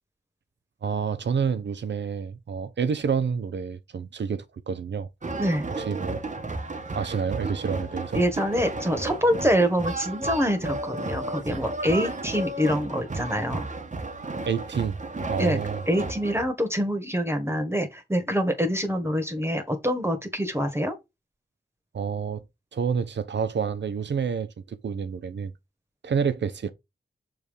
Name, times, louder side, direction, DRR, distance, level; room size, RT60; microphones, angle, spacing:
voice 1, 0.8-5.1 5.7-6.2 6.9-8.2 14.5-15.0 15.3-15.8 21.9-22.4 22.7-25.5 26.0-26.7, right 6 dB, 85° right, 0.9 m, -28 dB
sound 1, 5.2-16.4, right 2 dB, 45° right, 1.3 m, -33 dB
voice 2, 8.1-13.7 15.4-15.6 15.9-20.9, equal, 15° right, 1.6 m, -25 dB
6.5 x 3.4 x 5.3 m
cardioid pair, 60°, 18 cm